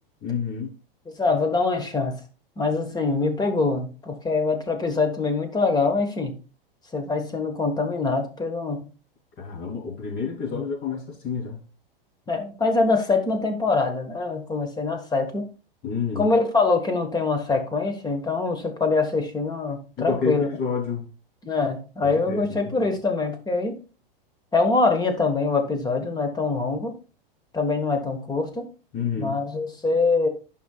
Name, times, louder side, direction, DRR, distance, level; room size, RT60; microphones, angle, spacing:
voice 1, 0.2-0.7 9.4-11.6 15.8-16.3 20.0-21.0 22.0-22.9 28.9-29.4, left 6 dB, 35° left, 3.5 m, -29 dB
voice 2, 1.2-2.2 2.6-6.3 6.9-8.9 10.5-10.7 12.3-15.5 16.2-20.5 21.4-23.8 24.5-26.9 27.5-28.7 29.2-30.3, left 3 dB, 15° left, 1.3 m, -24 dB
11.0 x 5.4 x 2.3 m
hypercardioid pair, 115°, 29 cm